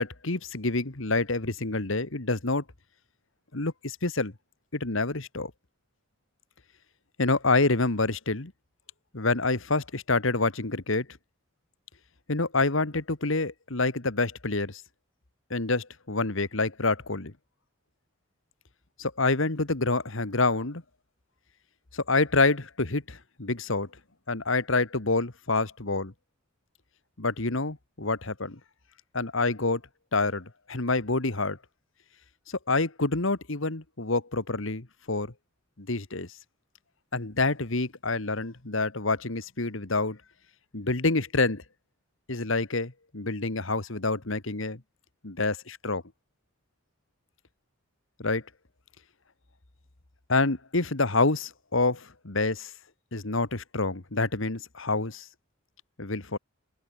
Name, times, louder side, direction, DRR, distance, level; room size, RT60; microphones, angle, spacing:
voice 1, 0.0-2.6 3.5-4.3 4.7-5.5 7.2-8.5 9.1-11.1 12.3-14.8 15.5-17.3 19.0-20.8 21.9-23.9 24.3-26.1 27.2-28.6 29.1-29.8 30.1-31.6 32.5-35.3 35.8-36.3 37.1-40.2 40.7-41.6 42.3-44.8 45.2-46.0 48.2-48.4 50.3-52.7 53.1-55.3 56.0-56.4, left 3 dB, 70° left, 1.8 m, -27 dB
head